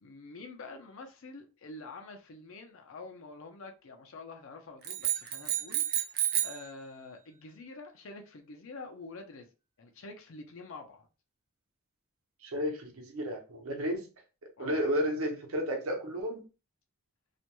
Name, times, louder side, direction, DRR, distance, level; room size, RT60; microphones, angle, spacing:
voice 1, 0.0-9.5 9.8-11.1 12.5-12.6 14.6-14.8, left 3 dB, 70° left, 0.6 m, -47 dB
sound 1, 4.8-6.7, right 11 dB, 45° right, 0.4 m, -30 dB
voice 2, 12.4-14.1 14.6-16.4, equal, 80° right, 0.8 m, -32 dB
2.5 x 2.2 x 2.9 m
head